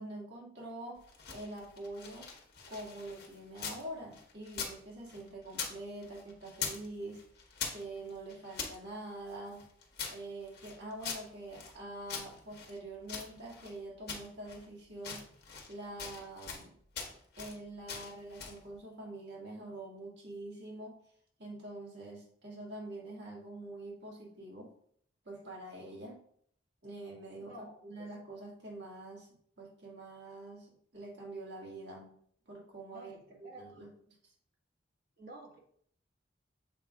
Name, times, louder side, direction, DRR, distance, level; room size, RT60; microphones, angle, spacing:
voice 1, 0.0-2.3 2.7-7.2 7.7-9.6 10.1-15.2 15.7-16.7 17.4-21.0 21.4-24.7 25.2-26.2 26.8-29.3 29.6-32.1 32.5-33.1 33.4-33.9, right 2 dB, 70° right, -3 dB, 2.2 m, -45 dB
sound 1, 1.0-3.8 4.1-5.8 6.0-6.9 7.1-8.8 9.3-11.8 12.1-13.7 14.1-14.7 15.0-15.7 16.0-16.7 16.9-17.6 17.9-18.6, left 6 dB, 60° left, 1.2 m, -42 dB
voice 2, 27.4-28.1 32.9-33.9 35.2-35.6, right 1 dB, 55° right, -2 dB, 1.7 m, -51 dB
7.4 x 2.7 x 4.8 m, 0.64 s
head